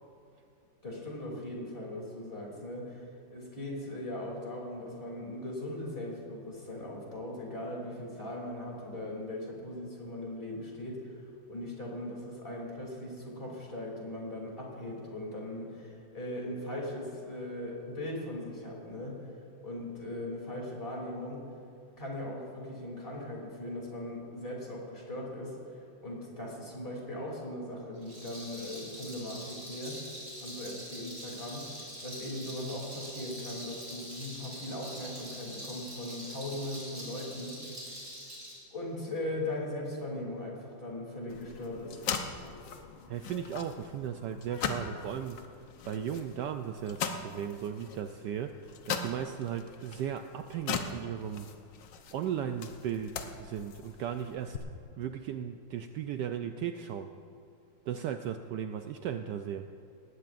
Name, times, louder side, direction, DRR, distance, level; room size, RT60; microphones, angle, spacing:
voice 1, 0.8-11.2 11.5-19.3 19.6-21.5 22.0-25.6 26.0-30.1 30.4-31.7 32.0-37.6 38.7-42.1, left 1 dB, 25° left, -3 dB, 3.2 m, -39 dB
Rattle, 28.0-38.6, equal, 40° right, 4.4 m, -44 dB
sound 1, 41.3-54.6, left 6 dB, 70° left, 1.5 m, -40 dB
voice 2, 43.1-45.4 45.9-51.5 52.1-53.1 53.4-54.6 55.0-57.1 57.9-59.7, right 9 dB, 75° right, 7 dB, 1.1 m, -36 dB
19.5 x 16.5 x 2.5 m, 2.5 s
omnidirectional pair, 2.1 m